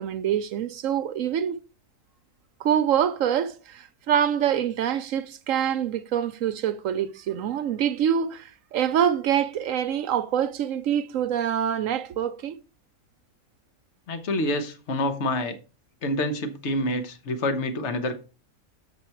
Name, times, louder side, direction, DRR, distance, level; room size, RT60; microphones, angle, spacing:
voice 1, 0.0-1.6 2.6-12.6, right 9 dB, 65° right, 1.0 m, -25 dB
voice 2, 14.1-15.6 16.0-18.1, left 1 dB, 50° left, 1.3 m, -27 dB
7.6 x 6.1 x 4.5 m
omnidirectional pair, 1.6 m